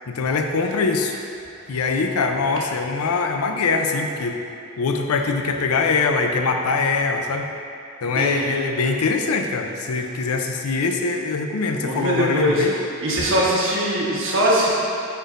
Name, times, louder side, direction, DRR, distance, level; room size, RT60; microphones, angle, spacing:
voice 1, 0.1-1.2 1.7-4.4 4.8-7.5 8.0-12.8, left 4 dB, 90° left, 4 dB, 0.5 m, -23 dB
voice 2, 8.1-8.6 11.8-12.7 13.0-14.7, right 1 dB, 60° right, -6 dB, 1.2 m, -21 dB
9.9 x 4.4 x 2.5 m, 2.6 s
head